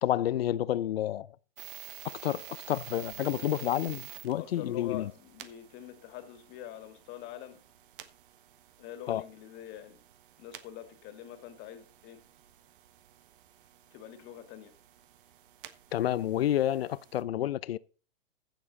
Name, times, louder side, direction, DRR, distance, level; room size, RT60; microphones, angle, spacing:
voice 1, 0.0-1.3 2.0-5.1 9.1-9.2 15.9-17.8, left 12 dB, 70° left, 0.7 m, -30 dB
sound 1, 1.6-17.2, right 11 dB, 55° right, 1.4 m, -51 dB
voice 2, 4.4-7.6 8.8-10.0 10.4-12.2 13.9-14.7, left 11 dB, 35° left, 2.2 m, -45 dB
14.5 x 7.5 x 4.1 m
hypercardioid pair, 125°, 31 cm